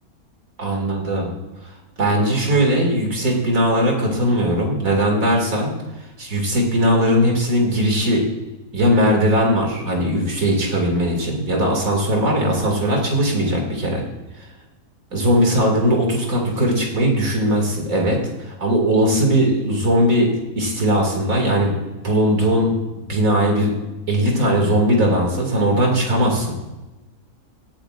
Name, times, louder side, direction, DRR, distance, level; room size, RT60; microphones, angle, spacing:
voice 1, 0.6-1.3 2.0-5.7 6.2-8.2 8.7-14.0 15.1-18.2 18.4-21.7 22.0-22.7 23.1-23.8 24.1-26.6, equal, 60° right, 1 dB, 2.7 m, -19 dB
18.5 x 8.5 x 2.5 m, 1.1 s
omnidirectional pair, 1.6 m